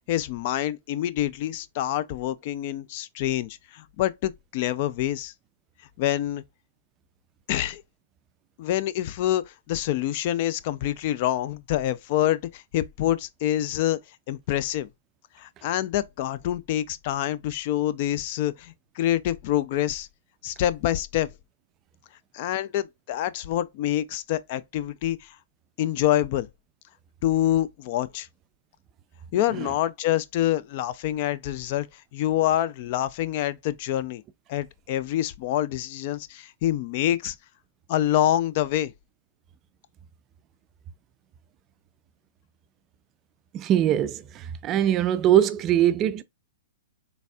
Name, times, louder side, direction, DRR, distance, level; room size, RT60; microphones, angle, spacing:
voice 1, 0.1-5.3 6.0-6.4 7.5-7.8 8.6-14.0 14.3-14.9 15.4-20.1 20.4-21.3 22.3-25.4 25.8-26.5 27.2-28.3 29.3-31.9 32.1-34.2 34.5-37.3 37.9-38.9, left 12 dB, 50° left, 0.4 m, -26 dB
voice 2, 43.5-46.2, right 11 dB, 30° right, 0.4 m, -22 dB
4.0 x 3.4 x 2.3 m
hypercardioid pair, 135°, 0 cm